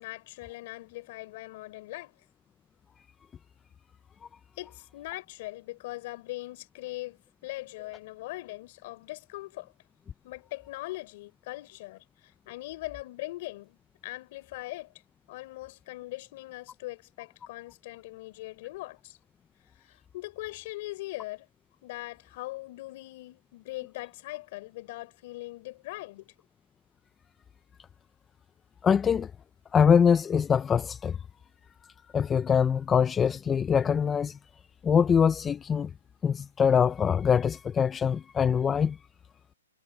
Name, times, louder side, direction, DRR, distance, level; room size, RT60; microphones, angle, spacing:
voice 1, 0.0-2.1 4.6-9.7 10.2-13.8 14.0-14.9 15.3-19.2 19.8-21.5 21.8-26.3, left 19 dB, 35° left, 3.9 m, -41 dB
voice 2, 28.8-29.3 29.7-31.2 32.1-34.4 34.8-35.9 36.2-39.0, left 7 dB, 10° left, 0.5 m, -23 dB
hypercardioid pair, 165°, 0 cm